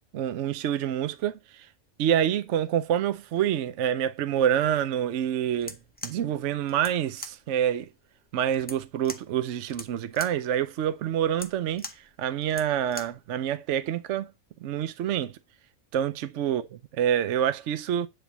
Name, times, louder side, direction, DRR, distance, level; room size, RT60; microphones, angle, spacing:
voice 1, 0.1-1.7 2.0-5.8 6.0-7.9 8.3-11.9 12.2-14.3 14.6-15.4 15.9-16.7 16.9-18.1, right 10 dB, 65° right, 0.9 m, -27 dB
sound 1, 5.5-13.3, left 1 dB, 10° left, 0.5 m, -43 dB
10.0 x 3.5 x 7.1 m
omnidirectional pair, 1.5 m